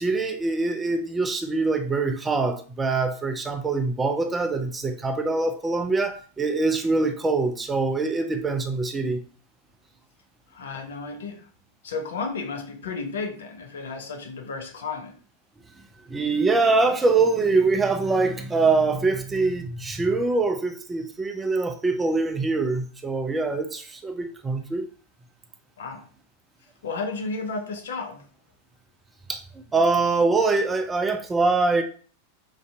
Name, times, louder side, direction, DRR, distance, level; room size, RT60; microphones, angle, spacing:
voice 1, 0.0-9.2 16.1-24.9 29.3-29.4 29.7-31.8, right 3 dB, 15° right, 0.4 m, -24 dB
voice 2, 10.5-11.4 11.8-15.1 25.8-26.1 26.8-28.2, left 4 dB, 60° left, 0.5 m, -33 dB
4.0 x 2.5 x 2.2 m
figure-of-eight pair, 90°, 0 cm